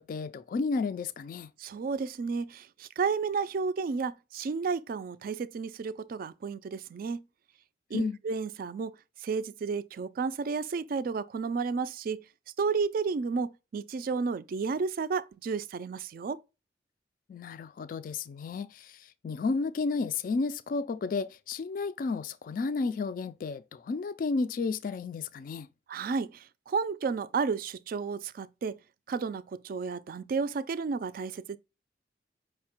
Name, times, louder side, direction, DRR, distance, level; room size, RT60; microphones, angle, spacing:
voice 1, 0.0-1.5 7.9-8.2 17.3-25.7, left 4 dB, 50° left, 0.3 m, -32 dB
voice 2, 1.6-7.2 7.9-8.9 9.2-12.2 12.6-16.4 25.9-28.8 29.1-31.6, right 5 dB, 50° right, 0.3 m, -32 dB
5.5 x 2.1 x 4.3 m
head